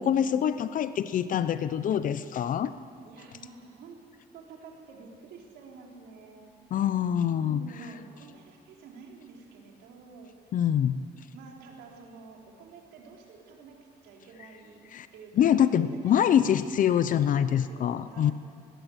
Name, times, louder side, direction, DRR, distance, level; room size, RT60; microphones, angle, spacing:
voice 1, 0.0-2.7 6.7-7.7 10.5-11.0 14.9-15.1 15.4-18.3, left 9 dB, 50° left, 13 dB, 0.8 m, -25 dB
voice 2, 3.0-4.0 4.3-6.5 7.3-10.5 11.3-13.8 14.0-15.6 15.9-16.3 17.2-18.3, right 5 dB, 80° right, 0 dB, 4.3 m, -49 dB
20.5 x 17.5 x 8.3 m, 2.2 s
cardioid pair, 110°, 17 cm